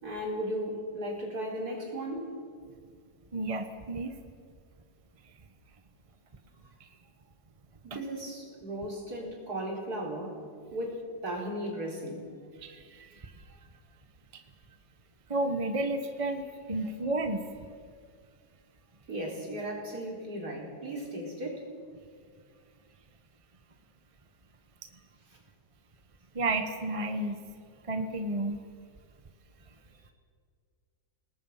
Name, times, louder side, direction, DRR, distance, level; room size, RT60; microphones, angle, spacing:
voice 1, 0.0-2.3 7.8-10.4 10.7-12.3 19.1-21.6, right 1 dB, 55° right, -1 dB, 4.8 m, -36 dB
voice 2, 3.3-4.2 6.8-6.9 7.9-8.0 12.6-13.3 15.3-17.4 26.3-27.4 27.9-28.6, right 2 dB, 20° right, 7 dB, 1.0 m, -32 dB
29.5 x 19.5 x 5.7 m, 2.1 s
omnidirectional pair, 2.0 m